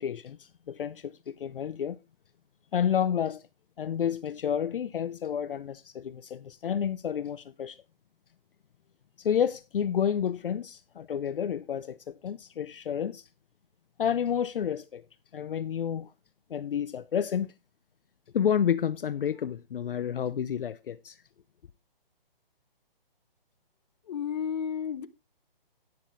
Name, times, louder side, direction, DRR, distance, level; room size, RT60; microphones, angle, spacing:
voice 1, 0.0-2.0 2.7-3.4 3.8-7.8 9.2-13.3 14.0-15.0 15.3-16.1 16.5-17.5 18.3-21.2, left 8 dB, 65° left, 0.7 m, -30 dB
voice 2, 24.0-25.1, left 8 dB, 45° left, 0.9 m, -32 dB
11.0 x 9.6 x 3.2 m
hypercardioid pair, 155°, 29 cm